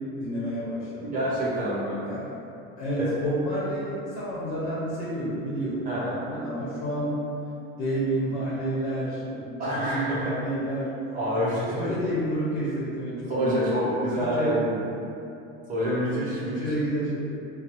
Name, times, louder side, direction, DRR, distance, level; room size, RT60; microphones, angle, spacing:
voice 1, 0.2-1.2 2.0-2.4 2.8-7.2 7.8-10.9 11.7-14.6 15.7-16.0 16.4-17.2, right 1 dB, 80° left, -8 dB, 0.9 m, -30 dB
voice 2, 1.0-2.0 3.0-3.1 5.9-6.1 9.6-10.2 11.1-11.8 13.3-14.8 15.7-16.7, equal, 25° right, -8 dB, 0.8 m, -27 dB
3.1 x 2.1 x 2.9 m, 2.7 s
cardioid pair, 135°, 30 cm